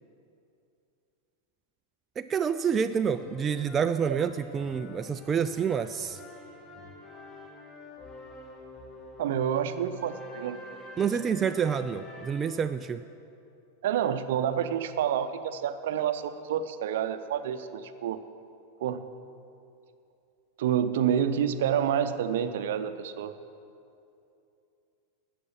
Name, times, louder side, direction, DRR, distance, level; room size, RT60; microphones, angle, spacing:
voice 1, 2.2-6.2 11.0-13.0, right 7 dB, 20° right, 9 dB, 0.3 m, -28 dB
sound 1, 3.0-12.5, left 2 dB, 20° left, 1.8 m, -46 dB
voice 2, 9.2-10.6 13.8-18.2 18.8-19.1 20.6-23.3, right 9 dB, 55° right, 11 dB, 0.6 m, -28 dB
13.0 x 7.8 x 7.2 m, 2.6 s
figure-of-eight pair, 90°, 0 cm